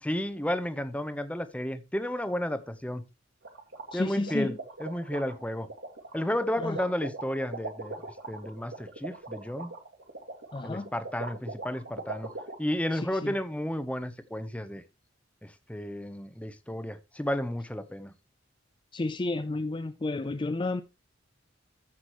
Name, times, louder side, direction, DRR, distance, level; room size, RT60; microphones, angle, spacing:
voice 1, 0.0-3.0 3.9-5.7 6.1-8.0 8.3-9.7 10.6-12.3 12.6-14.8 15.4-18.1, equal, 5° left, 0.8 m, -32 dB
sound 1, 3.4-12.6, right 3 dB, 75° right, 2.4 m, -40 dB
voice 2, 3.9-4.6 6.6-6.8 10.5-10.9 12.9-13.3 18.9-20.8, left 2 dB, 25° left, 0.4 m, -32 dB
14.5 x 6.1 x 3.0 m
head